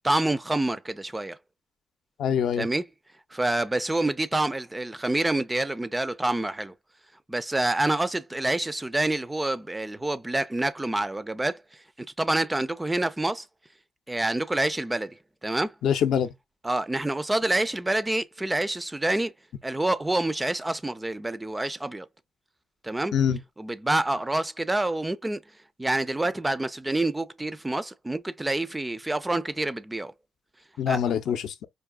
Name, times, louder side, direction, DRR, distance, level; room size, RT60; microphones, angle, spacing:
voice 1, 0.0-1.4 2.6-2.8 3.3-6.7 7.3-11.6 12.2-13.4 14.1-15.1 15.4-15.7 16.6-19.3 19.6-22.1 22.8-23.1 23.6-25.4 25.8-30.1 30.9-31.1, right 2 dB, 10° right, 0.4 m, -27 dB
voice 2, 2.2-2.7 15.8-16.3 23.1-23.4 30.8-31.5, left 8 dB, 70° left, 0.6 m, -24 dB
4.6 x 2.6 x 2.3 m
cardioid pair, 120°, 0 cm